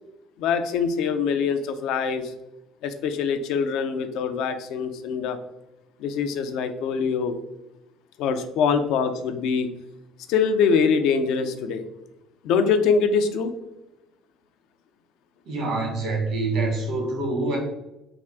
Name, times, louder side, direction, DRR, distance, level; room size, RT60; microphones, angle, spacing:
voice 1, 0.4-2.3 2.8-5.4 6.0-7.3 8.2-9.7 10.3-11.8 12.4-13.5, left 6 dB, 70° left, 9 dB, 0.4 m, -23 dB
voice 2, 15.5-17.6, right 3 dB, 70° right, 0 dB, 1.4 m, -26 dB
3.5 x 2.4 x 3.4 m, 0.94 s
hypercardioid pair, 60°, 0 cm